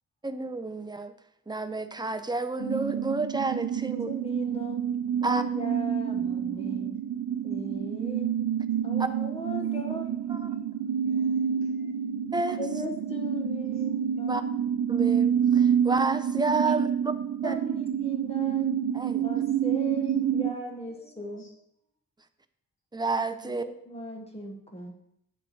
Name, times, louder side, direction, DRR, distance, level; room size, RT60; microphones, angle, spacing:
voice 1, 0.2-1.1 1.5-4.1 5.2-5.4 10.3-10.5 12.3-12.6 14.3-14.4 14.9-17.1 17.4-17.5 18.9-19.2 22.9-23.6, right 3 dB, 15° right, 9 dB, 0.5 m, -30 dB
sound 1, 2.6-20.5, right 8 dB, 80° right, 0.6 m, -28 dB
voice 2, 3.9-4.8 5.2-7.0 7.4-8.3 8.8-10.4 12.6-14.4 16.6-16.8 17.4-18.7 19.2-21.4 23.4-24.9, equal, 20° left, 2 dB, 1.4 m, -38 dB
voice 3, 6.9-7.5 9.4-9.8 10.3-11.9 13.7-13.8 20.1-20.4 20.9-21.5, left 2 dB, 55° left, -5 dB, 3.8 m, -59 dB
8.8 x 7.7 x 4.5 m, 0.76 s
wide cardioid pair, 180°, 32 cm